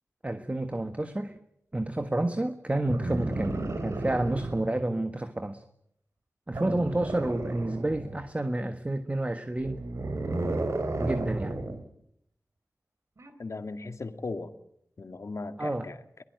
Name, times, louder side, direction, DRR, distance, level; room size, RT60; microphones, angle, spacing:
voice 1, 0.2-1.4 1.7-5.6 6.5-9.8 11.0-11.6 15.6-15.9, right 1 dB, 25° right, 8 dB, 1.5 m, -30 dB
sound 1, 2.9-4.8 6.5-8.3 9.6-11.8 13.2-13.3, right 2 dB, 60° right, 3.2 m, -33 dB
voice 2, 13.4-14.5 15.0-16.0, left 3 dB, 60° left, 8 dB, 2.0 m, -37 dB
23.0 x 19.5 x 9.4 m, 0.74 s
wide cardioid pair, 70°, 6 cm